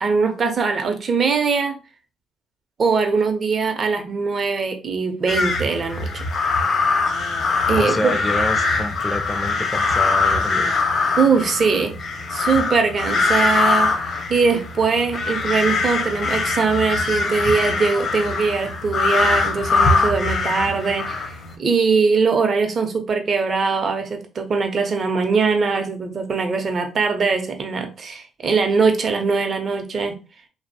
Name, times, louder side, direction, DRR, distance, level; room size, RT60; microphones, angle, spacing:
voice 1, 0.0-1.7 2.8-6.2 7.7-8.2 11.2-11.9 12.3-13.9 14.3-21.2 21.6-30.1, right 5 dB, 50° right, 0.6 m, -21 dB
sound 1, 5.3-21.5, left 4 dB, 60° left, 0.6 m, -22 dB
voice 2, 7.8-10.8, left 1 dB, 15° left, 0.4 m, -27 dB
2.7 x 2.0 x 2.6 m
cardioid pair, 90°, 0 cm